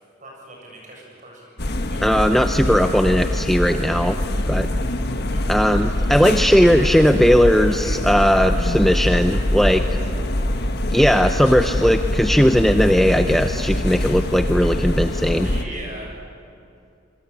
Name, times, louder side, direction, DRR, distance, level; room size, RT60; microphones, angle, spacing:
voice 1, 0.2-2.1 3.8-4.1 5.3-5.6 5.9-6.0 6.3-6.9 7.2-7.6 15.4-16.1, right 1 dB, 40° right, -1 dB, 7.9 m, -39 dB
sound 1, 1.6-15.6, left 1 dB, 50° left, 1.5 m, -23 dB
voice 2, 2.0-4.2 4.5-4.7 5.5-10.0 10.9-15.5, equal, ahead, 6 dB, 0.6 m, -17 dB
27.0 x 23.0 x 8.7 m, 2.6 s
head